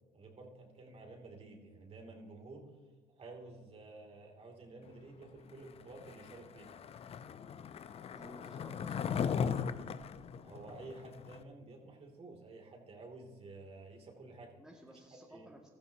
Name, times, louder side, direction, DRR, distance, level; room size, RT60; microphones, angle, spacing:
voice 1, 0.1-2.7 3.2-6.7 10.4-14.5 15.3-15.5, right 2 dB, 40° right, 2 dB, 2.8 m, -51 dB
Skateboard, 6.0-11.4, left 7 dB, 40° left, 0.6 m, -38 dB
voice 2, 8.1-9.1 14.6-15.7, equal, 5° right, -1 dB, 2.0 m, -54 dB
14.5 x 14.0 x 2.9 m, 1.3 s
supercardioid pair, 85°, 15 cm